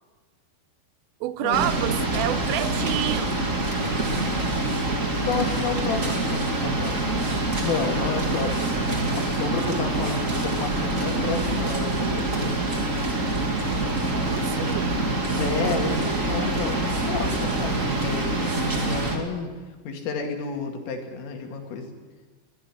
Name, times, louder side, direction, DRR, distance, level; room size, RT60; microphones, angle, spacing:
voice 1, 1.2-3.3 14.1-15.4, right 14 dB, 85° right, 14 dB, 3.4 m, -29 dB
sound 1, 1.5-19.2, right 2 dB, 40° right, 1.1 m, -25 dB
voice 2, 5.1-7.0 7.6-8.7 9.1-12.5 15.4-19.5 19.8-21.9, left 5 dB, 80° left, 3 dB, 4.9 m, -31 dB
21.5 x 14.0 x 9.9 m, 1.3 s
omnidirectional pair, 5.7 m